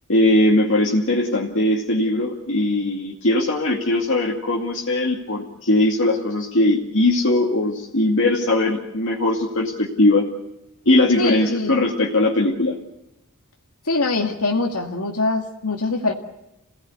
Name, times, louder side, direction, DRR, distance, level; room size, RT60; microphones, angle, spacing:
voice 1, 0.1-10.3 10.9-12.8, left 1 dB, 60° left, -2 dB, 2.5 m, -20 dB
voice 2, 11.2-11.8 13.9-16.1, left 3 dB, 80° left, 1 dB, 2.1 m, -23 dB
28.5 x 18.0 x 8.2 m, 0.94 s
head